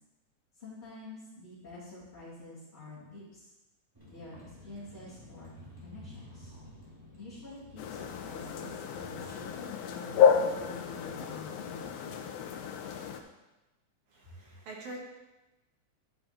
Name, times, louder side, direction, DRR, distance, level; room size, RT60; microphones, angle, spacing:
voice 1, 0.6-3.5 4.0-5.5 5.8-6.5 7.1-12.3 14.2-14.3, left 2 dB, 20° left, -13 dB, 2.8 m, -48 dB
Vehicle, 3.9-9.4, left 1 dB, 10° right, 1.7 m, -51 dB
sound 1, 7.8-13.2, left 7 dB, 75° left, 1.6 m, -30 dB
voice 2, 14.1-15.0, right 2 dB, 75° right, -1 dB, 2.9 m, -44 dB
10.5 x 5.7 x 4.2 m, 1.0 s
omnidirectional pair, 3.4 m